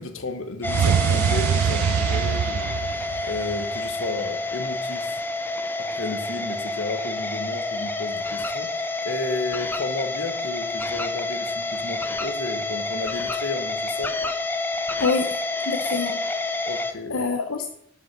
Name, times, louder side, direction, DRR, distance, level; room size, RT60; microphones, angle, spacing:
voice 1, 0.0-2.8 3.2-5.2 5.8-14.1 16.6-17.3, left 3 dB, 70° left, 9 dB, 1.2 m, -33 dB
sound 1, 0.6-16.9, left 2 dB, 10° left, 0.7 m, -28 dB
sound 2, 0.6-3.8, right 8 dB, 90° right, 0.3 m, -23 dB
voice 2, 15.0-15.4 15.7-16.7 17.1-17.7, left 4 dB, 85° left, 4 dB, 0.8 m, -26 dB
11.5 x 5.6 x 5.9 m, 0.72 s
head